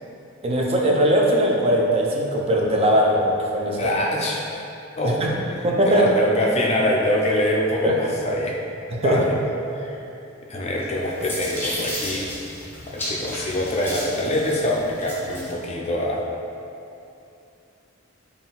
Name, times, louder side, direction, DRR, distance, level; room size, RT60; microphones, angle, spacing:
voice 1, 0.4-3.9 5.0-5.3 5.6-6.1 7.8-8.1 8.9-9.2, equal, 30° right, -1 dB, 0.4 m, -20 dB
voice 2, 3.8-4.6 5.0-8.6 9.0-9.3 9.7-10.0 10.5-12.3 12.9-16.2, left 1 dB, 30° left, -2 dB, 0.4 m, -24 dB
sound 1, 10.8-15.5, left 1 dB, 10° left, 0.8 m, -33 dB
3.7 x 2.3 x 3.9 m, 2.7 s
head